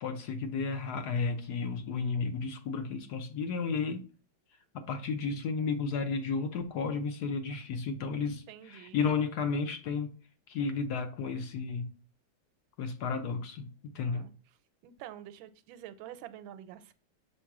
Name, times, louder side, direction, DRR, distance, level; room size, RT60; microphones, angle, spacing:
voice 1, 0.0-4.1 4.7-10.1 10.5-11.9 12.8-14.3, left 5 dB, 70° left, 1.1 m, -33 dB
voice 2, 8.5-9.2 14.1-14.3 14.8-16.9, right 11 dB, 85° right, 1.3 m, -47 dB
6.7 x 3.1 x 4.6 m
omnidirectional pair, 2.1 m